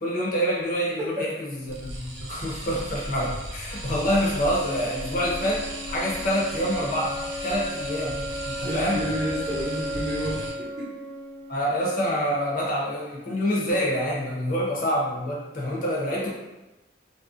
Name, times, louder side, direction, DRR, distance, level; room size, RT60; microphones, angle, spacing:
voice 1, 0.0-9.0 11.5-16.3, equal, 50° left, -4 dB, 0.7 m, -27 dB
sound 1, 1.7-10.5, right 1 dB, 85° right, 0.6 m, -37 dB
sound 2, 4.3-12.3, equal, 10° left, 0.7 m, -35 dB
voice 2, 8.6-10.9, equal, 25° right, -10 dB, 0.7 m, -30 dB
2.5 x 2.1 x 2.4 m, 1.0 s
head